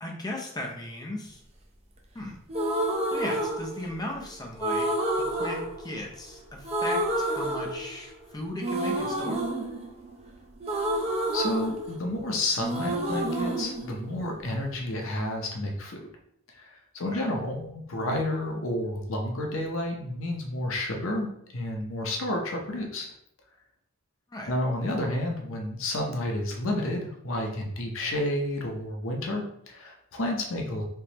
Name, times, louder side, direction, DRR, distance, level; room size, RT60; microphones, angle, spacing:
voice 1, 0.0-1.4 2.1-2.4 3.1-4.9 5.2-9.5 17.1-17.3 24.3-24.5, left 1 dB, 20° left, 0 dB, 0.6 m, -37 dB
sound 1, 2.5-4.2 4.6-6.4 6.6-8.2 8.6-12.3 12.6-14.6, right 1 dB, 30° right, 0.5 m, -29 dB
voice 2, 11.3-16.0 16.5-23.1 24.5-30.8, left 1 dB, 85° left, 1 dB, 0.7 m, -30 dB
3.5 x 3.0 x 2.9 m, 0.71 s
head